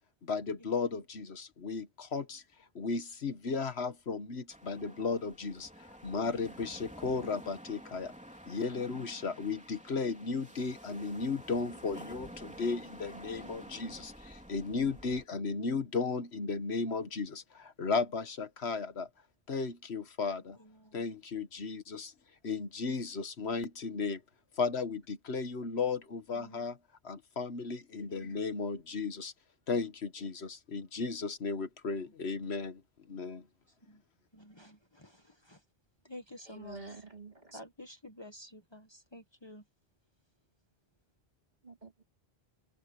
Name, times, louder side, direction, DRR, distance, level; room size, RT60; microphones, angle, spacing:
voice 1, 0.2-2.4 2.7-8.1 8.5-19.1 19.5-20.6 20.9-22.1 22.4-24.2 24.5-26.8 27.0-29.3 29.7-32.8 33.1-33.5, left 4 dB, 80° left, 1.6 m, -35 dB
sound 1, 4.5-15.3, equal, 5° right, 3.5 m, -50 dB
voice 2, 20.6-21.0 26.4-26.7 28.1-28.5 33.8-34.0 34.3-35.6 36.0-36.9 37.5-39.6, left 1 dB, 25° left, 1.6 m, -51 dB
voice 3, 36.5-37.6 41.6-42.0, right 4 dB, 45° right, 3.8 m, -48 dB
omnidirectional pair, 1.1 m